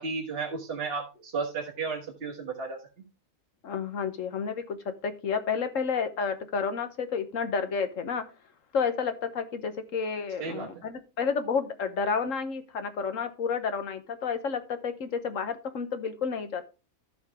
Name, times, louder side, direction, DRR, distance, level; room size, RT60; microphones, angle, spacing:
voice 1, 0.0-2.8 10.4-10.8, right 4 dB, 40° right, -1 dB, 1.7 m, -33 dB
voice 2, 3.6-4.8 5.0-8.2 8.7-16.6, left 5 dB, 60° left, 10 dB, 1.3 m, -30 dB
14.0 x 5.2 x 3.5 m, 0.30 s
omnidirectional pair, 1.6 m